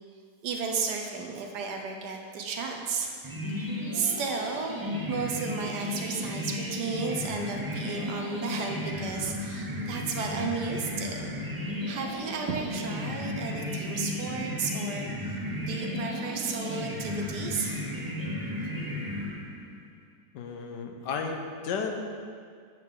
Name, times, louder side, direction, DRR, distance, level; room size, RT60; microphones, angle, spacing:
voice 1, 0.4-3.1 3.5-4.8 5.1-11.3 11.9-15.1 15.6-18.0, right 5 dB, 75° right, 2 dB, 1.4 m, -33 dB
sound 1, 3.2-19.8, left 1 dB, 25° right, 0.4 m, -34 dB
voice 2, 20.3-22.0, left 5 dB, 85° left, 3 dB, 1.4 m, -33 dB
8.3 x 6.5 x 3.7 m, 2.1 s
omnidirectional pair, 1.8 m